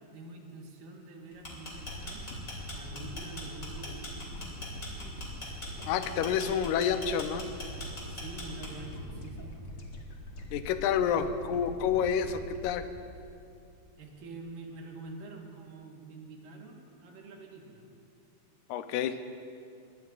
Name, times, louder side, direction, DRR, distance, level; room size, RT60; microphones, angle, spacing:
voice 1, 0.1-2.4 2.7-5.1 8.1-9.6 14.0-17.8, right 3 dB, 90° right, 1 dB, 3.1 m, -46 dB
sound 1, 1.3-9.0, left 1 dB, 25° left, 2.9 m, -42 dB
sound 2, 1.7-14.1 14.5-14.6, left 1 dB, 55° left, 1.7 m, -44 dB
voice 2, 5.9-7.5 10.5-12.9 18.7-19.2, left 8 dB, 75° left, 9 dB, 1.9 m, -29 dB
22.0 x 18.0 x 2.5 m, 2.5 s
omnidirectional pair, 3.9 m